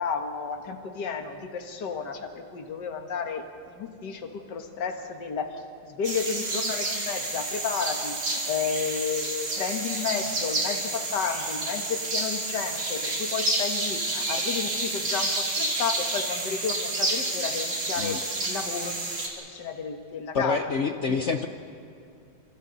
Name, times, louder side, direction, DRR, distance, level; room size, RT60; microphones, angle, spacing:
voice 1, 0.0-20.6 21.1-21.5, left 6 dB, 55° left, 5 dB, 2.1 m, -32 dB
sound 1, 6.0-19.3, right 2 dB, 85° right, 4.2 m, -29 dB
voice 2, 20.3-21.5, left 5 dB, 80° left, 6 dB, 0.6 m, -27 dB
29.5 x 27.0 x 4.1 m, 2.5 s
omnidirectional pair, 2.3 m